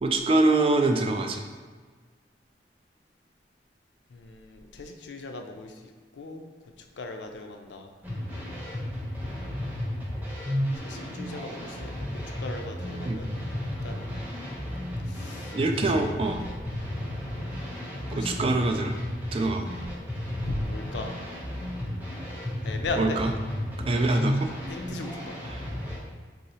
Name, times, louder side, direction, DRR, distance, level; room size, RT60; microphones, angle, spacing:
voice 1, 0.0-1.4 13.0-13.2 15.5-16.4 18.1-18.9 19.3-19.7 23.0-23.3 23.9-24.5 25.4-25.6, right 2 dB, 30° right, 4 dB, 0.3 m, -24 dB
voice 2, 4.1-5.7 6.2-6.5 7.0-7.9 10.8-12.0 12.4-13.4 13.8-14.0 15.1-15.5 16.1-16.2 18.1-18.4 20.4-21.1 22.6-23.2 24.7-25.3, left 2 dB, 85° left, 5 dB, 0.5 m, -37 dB
sound 1, 8.0-26.0, left 1 dB, 10° right, 0.8 m, -33 dB
3.8 x 2.7 x 4.2 m, 1.5 s
head